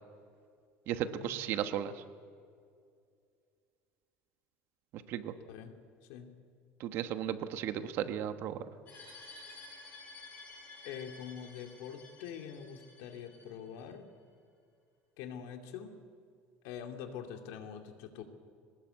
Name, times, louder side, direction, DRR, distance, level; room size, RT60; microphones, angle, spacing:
voice 1, 0.9-1.9 5.1-5.3 6.8-8.6, right 10 dB, 50° right, 9 dB, 1.2 m, -35 dB
sound 1, 8.9-13.8, left 3 dB, 30° left, 6.5 m, -52 dB
voice 2, 10.8-14.1 15.2-15.9 16.6-18.2, left 8 dB, 75° left, 5 dB, 2.5 m, -44 dB
23.0 x 19.5 x 8.2 m, 2.3 s
cardioid pair, 165°, 5 cm